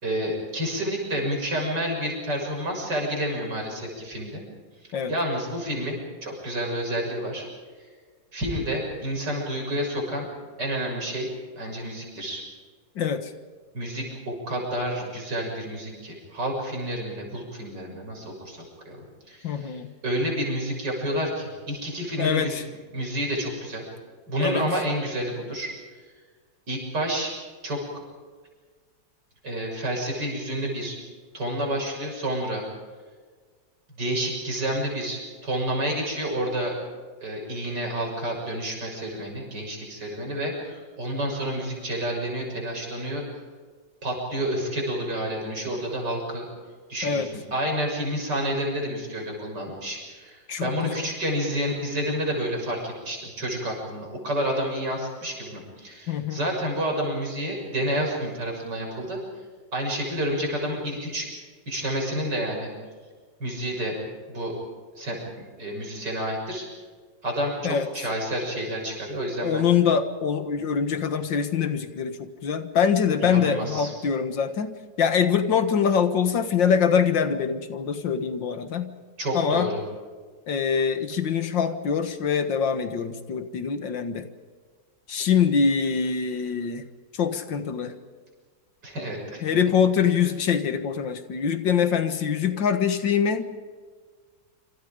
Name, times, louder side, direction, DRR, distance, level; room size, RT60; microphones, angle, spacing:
voice 1, 0.0-4.4 5.1-7.5 8.3-10.3 10.6-12.4 13.7-19.0 19.3-22.6 22.9-23.9 24.3-25.7 26.7-27.3 27.6-27.8 29.4-31.0 31.3-32.7 34.0-36.7 37.2-43.2 44.0-46.4 46.9-59.2 59.7-61.3 61.7-62.7 63.4-64.0 64.3-64.6 65.0-66.7 67.2-69.7 73.2-73.9 79.2-79.8 88.8-89.5 90.0-90.1, equal, 65° right, 0 dB, 7.2 m, -29 dB
voice 2, 13.0-13.3 19.4-19.9 22.2-22.6 24.4-24.7 47.0-47.3 50.5-51.0 56.1-56.4 67.6-68.1 69.4-78.9 79.3-79.7 80.5-84.3 85.1-86.9 87.1-87.9 89.4-93.5, left 7 dB, 80° left, 9 dB, 2.2 m, -24 dB
27.0 x 26.5 x 5.1 m, 1.5 s
omnidirectional pair, 2.0 m